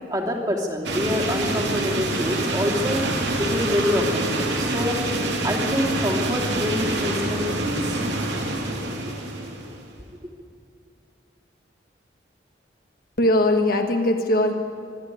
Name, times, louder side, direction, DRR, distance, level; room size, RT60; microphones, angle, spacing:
voice 1, 0.1-8.0, left 1 dB, 20° right, -2 dB, 2.7 m, -26 dB
sound 1, 0.8-9.8, right 2 dB, 65° right, 2.8 m, -26 dB
voice 2, 13.2-14.5, left 1 dB, 50° left, 4 dB, 1.6 m, -20 dB
24.0 x 12.0 x 9.3 m, 2.4 s
head